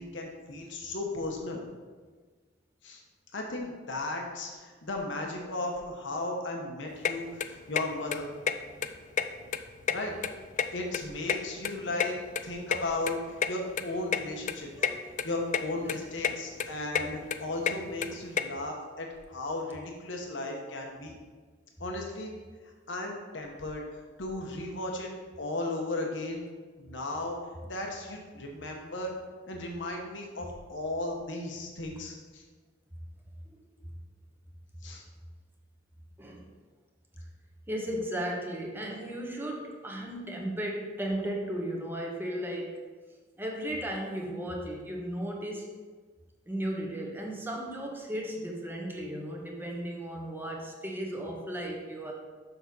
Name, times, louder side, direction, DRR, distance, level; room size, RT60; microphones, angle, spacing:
voice 1, 0.0-1.6 2.8-3.0 3.3-8.3 9.9-10.1 10.7-12.2 12.4-14.7 15.2-21.1 21.8-22.3 22.9-23.8 24.2-25.1 25.4-26.5 26.8-27.4 27.7-29.1 29.5-32.4 34.8-35.0, left 2 dB, 70° left, 1 dB, 1.1 m, -35 dB
sound 1, 7.0-7.1 7.4-7.8 8.1-8.2 8.5-8.6 8.8-9.6 9.8-11.0 11.3-12.8 13.1-13.2 13.4-13.5 13.8-13.9 14.1-14.2 14.5-14.9 15.2-15.6 15.9-16.3 16.6-18.4, left 7 dB, 40° left, 0.3 m, -29 dB
voice 2, 37.7-42.8 43.4-45.7 46.5-52.1, right 1 dB, 10° right, 0 dB, 1.1 m, -35 dB
6.8 x 6.0 x 4.1 m, 1.4 s
head